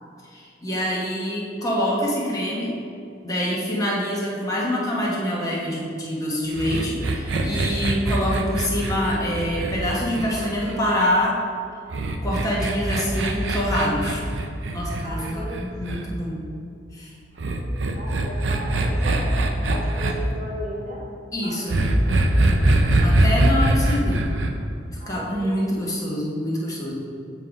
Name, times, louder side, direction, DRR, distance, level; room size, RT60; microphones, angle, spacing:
voice 1, 0.2-2.7 3.2-11.4 12.2-14.2 14.7-16.5 16.9-17.1 21.3-21.9 23.0-24.3 25.1-26.9, equal, 20° left, -5 dB, 1.0 m, -25 dB
sound 1, 6.6-11.0 11.9-16.0 17.4-20.1 21.7-24.5, right 1 dB, 80° right, 0.6 m, -22 dB
voice 2, 15.0-16.1 17.9-21.1 21.4-21.8 22.0-22.6 23.1-23.6 25.0-25.9, equal, 40° right, -3 dB, 1.2 m, -37 dB
7.4 x 3.6 x 5.0 m, 2.5 s
head